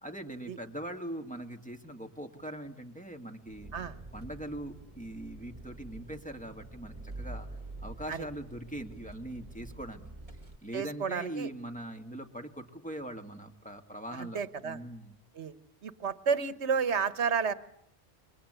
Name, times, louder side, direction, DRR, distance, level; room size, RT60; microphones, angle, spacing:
voice 1, 0.0-3.7 4.1-7.5 7.8-10.1 10.6-15.1, right 1 dB, 5° left, 4 dB, 2.4 m, -41 dB
Engine, 3.5-10.6, right 2 dB, 30° right, 1.9 m, -46 dB
voice 2, 10.7-11.5 14.1-14.8 15.3-15.5 15.8-17.5, right 6 dB, 80° right, 14 dB, 1.5 m, -31 dB
29.0 x 23.0 x 8.3 m, 0.75 s
omnidirectional pair, 1.1 m